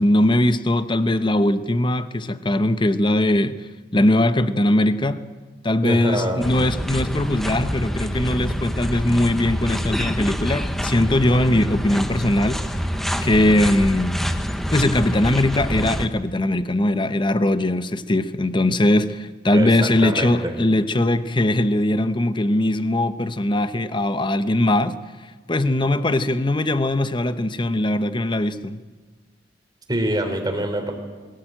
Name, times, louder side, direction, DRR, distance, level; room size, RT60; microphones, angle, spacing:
voice 1, 0.0-3.5 3.9-5.2 5.6-12.6 13.2-14.2 14.7-25.0 25.5-28.8, left 1 dB, 25° left, 0.9 m, -20 dB
voice 2, 5.8-6.5 19.5-20.6 29.9-30.9, right 1 dB, 20° right, 3.6 m, -25 dB
sound 1, 6.4-16.1, equal, ahead, 1.1 m, -26 dB
22.5 x 16.5 x 9.0 m
head